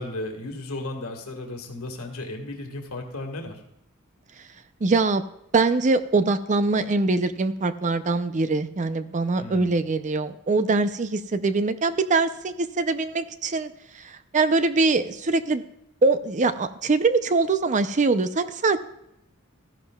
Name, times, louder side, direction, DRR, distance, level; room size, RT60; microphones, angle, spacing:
voice 1, 0.0-3.6 9.4-9.8, left 2 dB, 85° left, 3 dB, 1.7 m, -35 dB
voice 2, 4.8-5.2 5.5-15.6 16.0-18.8, right 3 dB, 35° right, 11 dB, 0.5 m, -23 dB
14.5 x 11.0 x 2.3 m, 0.80 s
head